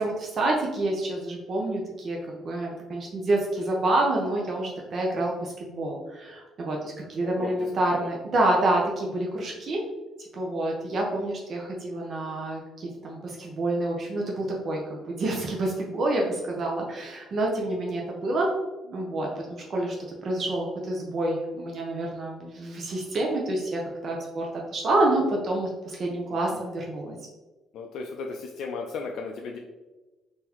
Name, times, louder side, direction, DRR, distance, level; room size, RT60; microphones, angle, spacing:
voice 1, 0.0-9.8 10.3-18.5 18.8-19.9 20.2-27.2, right 2 dB, 45° right, -1 dB, 0.6 m, -28 dB
voice 2, 7.2-8.1 17.9-18.0 26.3-26.6 27.7-29.6, left 4 dB, 70° left, 1 dB, 0.3 m, -36 dB
3.8 x 2.6 x 2.9 m, 1.1 s
cardioid pair, 130°, 0 cm